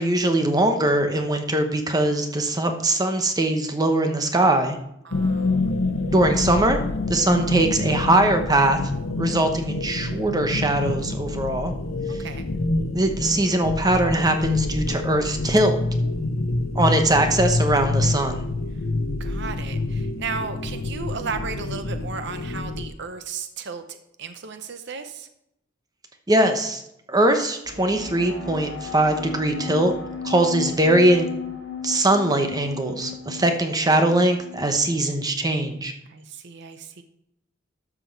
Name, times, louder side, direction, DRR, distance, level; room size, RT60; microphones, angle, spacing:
voice 1, 0.0-4.8 6.1-6.8 7.1-8.8 9.2-11.7 12.9-15.8 16.7-18.4 26.3-26.8 27.1-29.9 30.2-31.3 31.8-35.9, right 1 dB, 20° right, 6 dB, 0.9 m, -21 dB
voice 2, 5.0-5.7 12.2-12.5 19.2-25.3 33.3-33.4 36.1-37.0, right 5 dB, 60° right, 9 dB, 0.8 m, -35 dB
sound 1, 5.1-22.9, left 2 dB, 85° left, 0.9 m, -27 dB
sound 2, 27.6-35.2, left 5 dB, 70° left, 2.7 m, -35 dB
12.5 x 6.2 x 4.6 m, 0.80 s
head